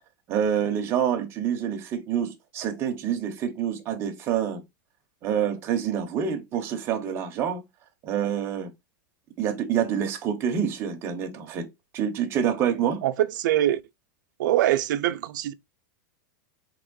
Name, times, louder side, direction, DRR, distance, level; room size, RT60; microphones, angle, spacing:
voice 1, 0.3-4.6 5.2-7.6 8.0-8.7 9.4-11.7 11.9-13.0, right 8 dB, 20° right, 0.6 m, -27 dB
voice 2, 13.0-13.8 14.4-15.5, right 13 dB, 65° right, 0.4 m, -23 dB
3.5 x 2.9 x 3.8 m
supercardioid pair, 175°, 11 cm